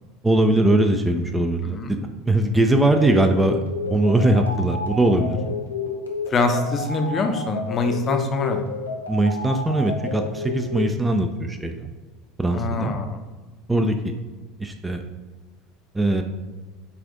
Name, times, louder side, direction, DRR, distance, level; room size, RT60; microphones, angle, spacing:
voice 1, 0.2-3.6 3.9-5.4 9.1-11.9 12.4-13.0 13.7-14.2 14.6-15.0 15.9-16.2, right 1 dB, 10° right, 6 dB, 0.4 m, -21 dB
sound 1, 3.0-10.9, left 4 dB, 85° left, 0.6 m, -31 dB
voice 2, 5.1-5.4 6.3-8.6 12.5-13.2, left 3 dB, 35° left, 5 dB, 0.6 m, -24 dB
5.5 x 2.5 x 3.7 m, 1.3 s
figure-of-eight pair, 75°, 0 cm